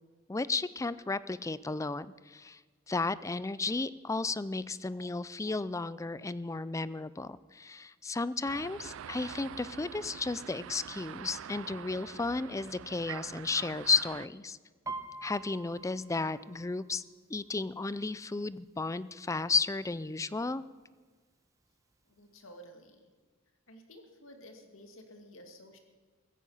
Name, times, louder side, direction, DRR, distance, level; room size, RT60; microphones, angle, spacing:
voice 1, 0.3-2.6 2.9-14.6 15.2-17.0 17.3-20.6, left 3 dB, 15° left, 17 dB, 0.4 m, -33 dB
sound 1, 8.4-14.3, right 9 dB, 70° right, 0.4 m, -45 dB
Piano, 14.9-18.5 18.9-19.3 19.6-20.2 20.8-20.9 21.2-22.2 22.6-22.7, right 3 dB, 15° right, 1.0 m, -46 dB
voice 2, 22.0-23.1 23.7-25.8, equal, 80° left, 5 dB, 2.3 m, -53 dB
16.0 x 15.0 x 5.6 m, 1.4 s
head